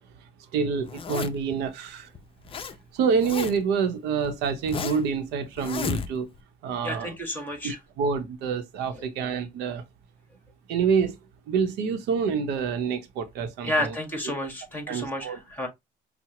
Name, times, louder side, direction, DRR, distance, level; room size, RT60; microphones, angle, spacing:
voice 1, 0.5-2.1 2.9-6.3 6.6-7.1 7.6-9.8 10.7-11.2 11.5-14.0 14.9-15.4, right 6 dB, 85° right, 0.7 m, -27 dB
Zipper (clothing), 0.8-1.5 2.1-2.7 3.0-3.8 4.2-5.1 5.6-6.4, left 6 dB, 35° left, 0.5 m, -33 dB
voice 2, 6.8-7.8 9.0-9.1 13.6-15.7, left 1 dB, 10° left, 1.7 m, -31 dB
5.7 x 2.0 x 2.9 m
cardioid pair, 110°, 17 cm